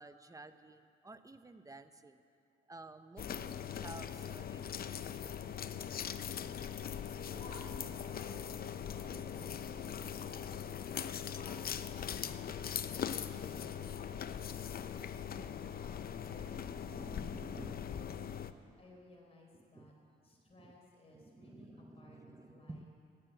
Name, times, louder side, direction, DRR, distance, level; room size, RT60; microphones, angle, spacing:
voice 1, 0.0-2.2 2.7-5.5 15.5-15.8 16.1-18.1 19.5-19.9 20.6-20.8 21.1-22.8, right 2 dB, 15° right, 10 dB, 0.8 m, -53 dB
sound 1, 3.2-18.5, left 8 dB, 50° left, 0.6 m, -41 dB
voice 2, 7.3-8.3 8.9-14.3 14.6-15.9 16.2-18.1 18.8-19.9 20.2-22.9, left 1 dB, 30° left, -1 dB, 4.3 m, -57 dB
14.0 x 9.5 x 9.1 m, 2.5 s
cardioid pair, 90°, 20 cm